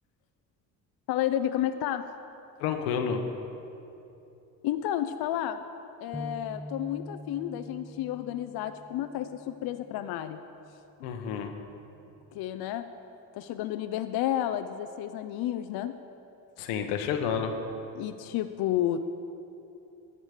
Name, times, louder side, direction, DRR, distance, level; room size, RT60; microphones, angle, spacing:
voice 1, 1.1-2.1 4.6-5.6 6.0-10.4 12.3-12.8 13.3-15.9 17.9-19.2, left 11 dB, 55° left, 9 dB, 0.5 m, -31 dB
voice 2, 2.6-3.2 11.0-11.5 16.6-17.5, left 7 dB, 80° left, 6 dB, 1.0 m, -30 dB
sound 1, 6.1-10.4 10.9-11.1 11.9-12.4, equal, 5° right, 0.6 m, -45 dB
11.0 x 7.4 x 4.9 m, 2.8 s
supercardioid pair, 70°, 46 cm